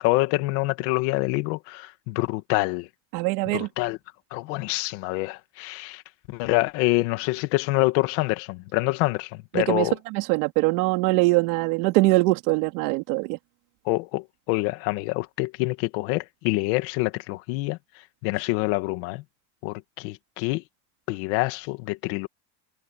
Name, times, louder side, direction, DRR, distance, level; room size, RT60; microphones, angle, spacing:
voice 1, 0.0-2.9 3.5-4.0 4.3-6.0 6.3-9.9 13.9-17.8 18.2-19.2 19.6-20.6 21.1-22.3, left 21 dB, 75° left, 2.1 m, -26 dB
voice 2, 3.1-3.7 9.5-13.4, right 22 dB, 85° right, 3.2 m, -22 dB
cardioid pair, 175°, 44 cm